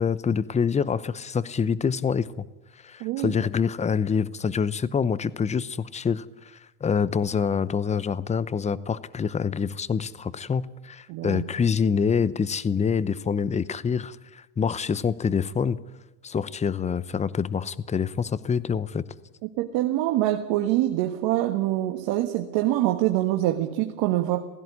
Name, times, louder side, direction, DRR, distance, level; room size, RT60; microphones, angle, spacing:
voice 1, 0.0-2.3 2.8-15.8 16.2-19.0, left 6 dB, 15° left, 18 dB, 0.8 m, -26 dB
voice 2, 3.0-3.3 11.1-11.4 19.4-24.4, right 14 dB, 60° right, 5 dB, 1.7 m, -25 dB
16.5 x 16.5 x 9.8 m, 1.0 s
supercardioid pair, 100°, 40 cm